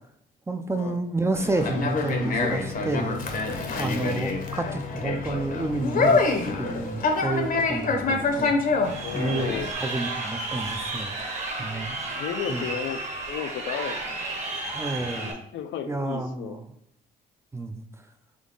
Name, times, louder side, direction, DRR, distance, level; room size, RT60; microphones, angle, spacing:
voice 1, 0.5-3.2 3.8-8.5 9.1-12.0 12.5-12.6 14.7-15.3 15.9-16.6 17.5-17.8, right 2 dB, 15° right, 6 dB, 0.5 m, -30 dB
Conversation, 1.3-9.7, left 3 dB, 45° left, 0.8 m, -26 dB
Crowd, 8.8-15.3, right 2 dB, 35° right, 1.1 m, -33 dB
voice 2, 8.9-9.7 12.1-14.2 15.1-16.6, left 8 dB, 75° left, 8 dB, 0.5 m, -34 dB
3.7 x 3.5 x 3.8 m, 0.75 s
cardioid pair, 90°, 20 cm